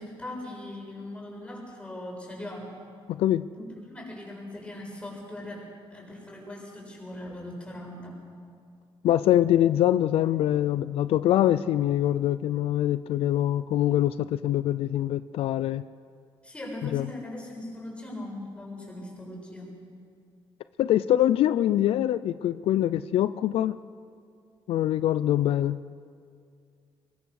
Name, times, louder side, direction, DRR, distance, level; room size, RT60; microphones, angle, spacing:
voice 1, 0.0-2.7 3.6-8.2 16.4-19.7, left 1 dB, 10° left, -2 dB, 7.3 m, -40 dB
voice 2, 3.1-3.4 9.0-15.8 16.9-17.1 20.8-23.8 24.7-25.8, left 12 dB, 85° left, 14 dB, 0.5 m, -24 dB
24.5 x 22.0 x 6.5 m, 2.2 s
cardioid pair, 125°, 10 cm